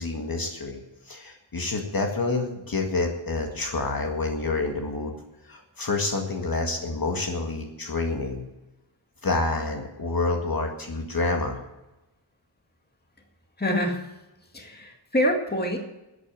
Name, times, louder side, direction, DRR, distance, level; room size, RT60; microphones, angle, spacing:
voice 1, 0.0-5.1 5.5-8.4 9.2-11.6, left 3 dB, 50° left, 2 dB, 2.0 m, -28 dB
voice 2, 13.6-14.0 14.5-15.8, equal, 20° left, 2 dB, 2.1 m, -25 dB
12.5 x 9.0 x 7.6 m, 0.98 s
wide cardioid pair, 120°, 46 cm